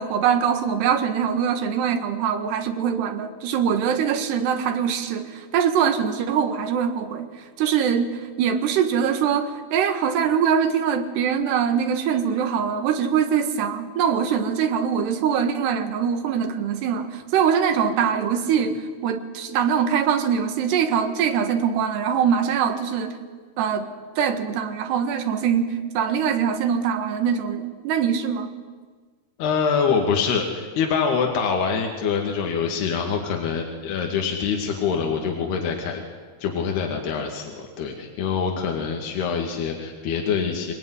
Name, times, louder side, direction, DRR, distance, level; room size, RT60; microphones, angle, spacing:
voice 1, 0.0-7.3 7.6-23.2 23.6-23.9 24.2-28.5, right 7 dB, 85° right, 7 dB, 3.8 m, -23 dB
voice 2, 29.4-36.0 36.4-40.7, left 6 dB, 75° left, 1 dB, 4.2 m, -25 dB
25.0 x 20.0 x 9.9 m, 1.5 s
omnidirectional pair, 4.6 m